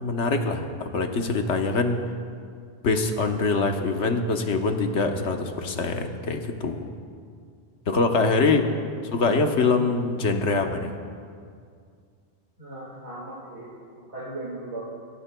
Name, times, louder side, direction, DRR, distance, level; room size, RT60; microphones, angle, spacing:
voice 1, 0.0-2.0 2.8-6.9 7.9-8.7 9.1-10.9, left 3 dB, 85° left, 4 dB, 1.3 m, -24 dB
voice 2, 12.6-13.7 14.1-14.8, right 2 dB, 75° right, -6 dB, 2.4 m, -37 dB
25.5 x 14.0 x 2.3 m, 2.2 s
omnidirectional pair, 1.2 m